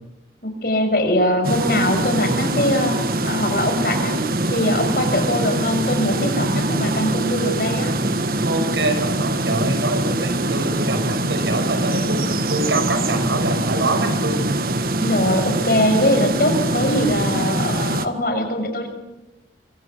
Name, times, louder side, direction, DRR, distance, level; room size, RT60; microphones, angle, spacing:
voice 1, 0.4-4.2 4.5-7.9 15.0-18.9, left 1 dB, 55° left, 5 dB, 6.4 m, -21 dB
sound 1, 1.4-18.1, right 2 dB, 50° right, 1.7 m, -23 dB
voice 2, 8.4-14.4, right 2 dB, 80° right, 7 dB, 6.4 m, -24 dB
26.0 x 24.5 x 7.5 m, 0.96 s
head